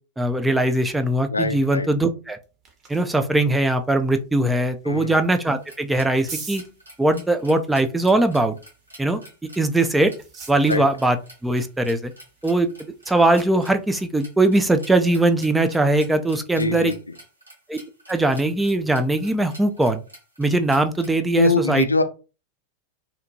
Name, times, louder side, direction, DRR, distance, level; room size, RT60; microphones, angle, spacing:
voice 1, 0.2-2.4 2.9-6.6 7.0-8.5 9.0-9.2 9.6-10.1 10.5-11.2 11.4-12.1 12.4-16.9 17.7-17.8 18.1-20.0 20.4-21.9, right 2 dB, 5° right, 7 dB, 0.3 m, -20 dB
voice 2, 1.3-1.9 4.9-5.2 10.7-10.8 16.5-17.0 21.4-22.0, left 2 dB, 80° left, 8 dB, 0.3 m, -22 dB
sound 1, 2.2-14.7, right 4 dB, 30° right, 0.7 m, -47 dB
sound 2, 5.5-21.1, right 1 dB, 85° right, 0.8 m, -48 dB
2.7 x 2.1 x 2.7 m, 0.32 s
figure-of-eight pair, 90°, 0 cm